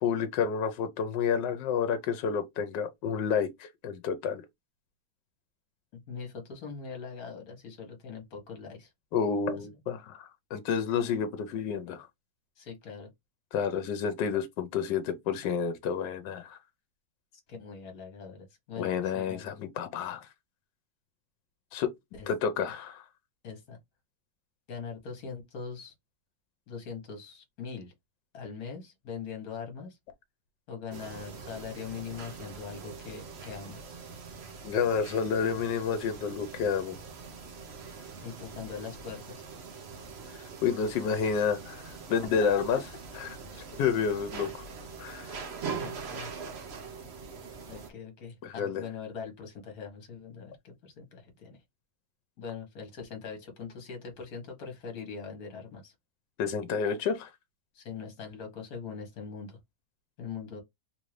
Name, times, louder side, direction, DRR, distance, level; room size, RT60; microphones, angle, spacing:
voice 1, 0.0-4.4 9.1-12.1 13.5-16.6 18.8-20.3 21.7-21.9 22.3-23.0 34.6-37.0 40.6-42.8 43.2-43.4 43.8-44.5 45.0-45.3 48.4-48.8 56.4-57.3, left 6 dB, 80° left, 1.3 m, -30 dB
voice 2, 6.1-8.9 12.6-13.1 17.5-19.5 22.2-22.3 23.4-23.8 24.7-25.9 26.7-27.9 28.3-30.0 30.7-34.0 38.2-39.4 42.1-42.4 43.5-43.6 45.8-46.3 47.7-51.6 52.4-55.9 57.7-59.6 60.2-60.6, left 6 dB, 60° left, 1.6 m, -42 dB
sound 1, 30.9-47.9, right 5 dB, 55° right, 0.7 m, -43 dB
3.6 x 2.6 x 3.2 m
omnidirectional pair, 1.9 m